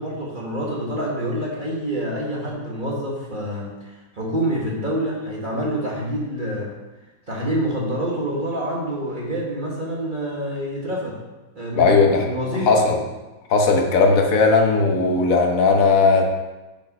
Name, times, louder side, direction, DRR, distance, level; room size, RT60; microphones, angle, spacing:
voice 1, 0.0-6.7 7.3-11.2 11.5-12.7, equal, 30° right, -4 dB, 1.6 m, -27 dB
voice 2, 11.7-12.3 12.7-13.0 13.5-16.2, left 4 dB, 55° left, 2 dB, 1.4 m, -17 dB
6.7 x 6.4 x 5.4 m, 1.1 s
omnidirectional pair, 1.9 m